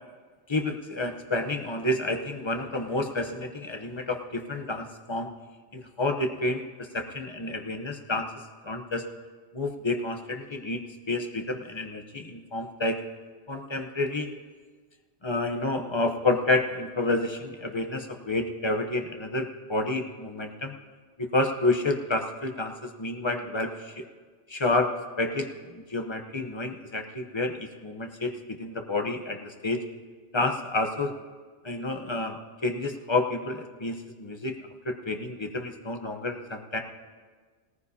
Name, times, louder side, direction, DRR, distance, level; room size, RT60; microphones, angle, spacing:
voice 1, 0.5-5.3 5.7-6.7 6.9-8.3 8.6-9.0 9.5-13.0 13.5-14.3 15.2-20.7 21.2-24.0 24.5-24.9 25.2-29.8 30.3-31.1 31.6-34.6 34.8-36.8, left 2 dB, 30° left, 4 dB, 0.7 m, -29 dB
18.0 x 14.5 x 2.8 m, 1.5 s
omnidirectional pair, 1.2 m